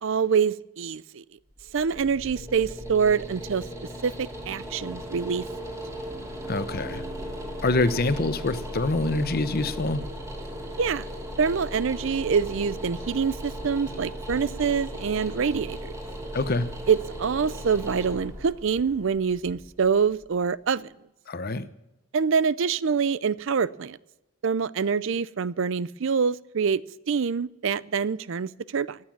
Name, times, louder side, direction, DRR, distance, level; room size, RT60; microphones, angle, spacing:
voice 1, 0.0-1.2 1.7-3.6 4.0-5.4 10.8-11.1 11.4-15.9 16.9-20.9 22.1-24.0 24.4-26.8 27.1-29.0, right 6 dB, 60° right, 18 dB, 0.5 m, -25 dB
sound 1, 1.5-20.5, equal, 15° right, 2.8 m, -37 dB
voice 2, 6.5-7.0 7.6-10.0 16.3-16.7 21.3-21.7, left 2 dB, 45° left, 13 dB, 0.8 m, -25 dB
15.0 x 9.6 x 8.7 m, 0.96 s
head